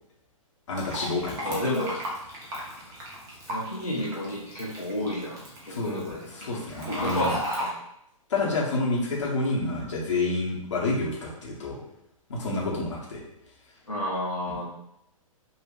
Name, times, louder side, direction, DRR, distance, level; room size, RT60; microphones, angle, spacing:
voice 1, 0.7-1.6 5.7-7.4 8.3-11.8 12.3-13.2 14.5-14.6, left 2 dB, 55° left, -4 dB, 1.2 m, -29 dB
Fill (with liquid), 0.8-7.7, equal, 15° right, 0.9 m, -36 dB
voice 2, 1.4-2.0 3.5-7.7 13.9-14.7, left 1 dB, 85° left, -5 dB, 1.1 m, -31 dB
5.5 x 2.5 x 2.5 m, 0.79 s
figure-of-eight pair, 120°, 18 cm